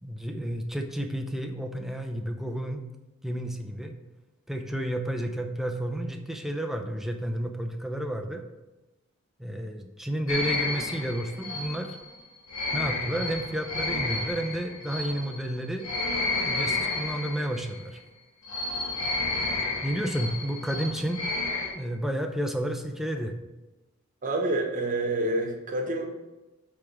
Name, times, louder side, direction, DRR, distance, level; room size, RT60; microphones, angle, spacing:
voice 1, 0.0-2.8 3.2-4.0 4.5-8.4 9.4-12.0 12.7-15.9 16.4-18.0 19.8-21.2 21.7-23.3, right 1 dB, ahead, 3 dB, 0.6 m, -31 dB
sound 1, 10.3-17.8 18.4-21.7, left 3 dB, 90° left, 2.0 m, -31 dB
voice 2, 24.2-26.1, right 2 dB, 40° right, 2 dB, 1.2 m, -28 dB
8.1 x 3.6 x 6.1 m, 1.1 s
head